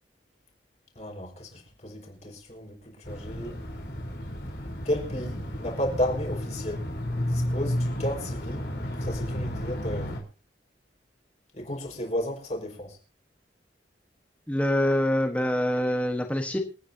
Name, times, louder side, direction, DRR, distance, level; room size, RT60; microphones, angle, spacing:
voice 1, 0.9-3.6 4.8-8.7 8.9-10.1 11.5-13.0, left 1 dB, 40° left, 5.1 m, -33 dB
sound 1, 3.0-10.2, equal, 65° left, 4.0 m, -32 dB
voice 2, 14.5-16.6, left 1 dB, 10° left, 1.3 m, -25 dB
27.5 x 9.7 x 2.8 m
head